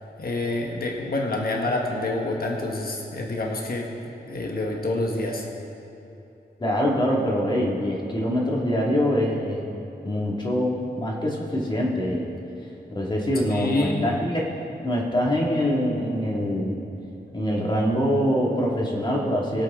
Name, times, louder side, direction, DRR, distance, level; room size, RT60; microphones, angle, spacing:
voice 1, 0.2-3.9 4.3-5.4 13.5-14.2, left 2 dB, 55° left, 0 dB, 1.4 m, -27 dB
voice 2, 6.6-9.6 10.0-12.3 12.9-14.5 14.8-16.8 17.3-19.6, equal, 25° left, -3 dB, 2.1 m, -24 dB
22.0 x 8.3 x 3.7 m, 2.8 s
wide cardioid pair, 150°, 18 cm